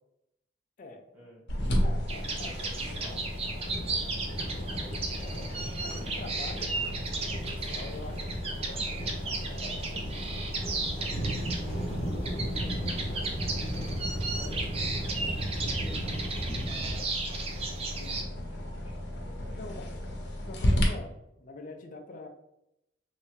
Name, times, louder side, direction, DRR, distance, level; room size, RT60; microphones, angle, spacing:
voice 1, 0.8-1.1 1.8-2.5 5.2-6.7 7.2-10.1 19.5-19.9 20.4-22.3, left 2 dB, 50° left, 5 dB, 0.4 m, -45 dB
sound 1, 1.5-20.8, equal, 80° left, 0.8 m, -35 dB
sound 2, 2.1-18.2, right 3 dB, 35° right, 0.5 m, -36 dB
voice 2, 2.4-4.7 11.2-12.1 12.5-13.6 14.3-17.1 17.4-20.1, left 1 dB, 10° right, -7 dB, 1.5 m, -51 dB
sound 3, 3.6-17.0, equal, 30° left, 0.9 m, -36 dB
3.2 x 2.6 x 3.1 m, 0.84 s
head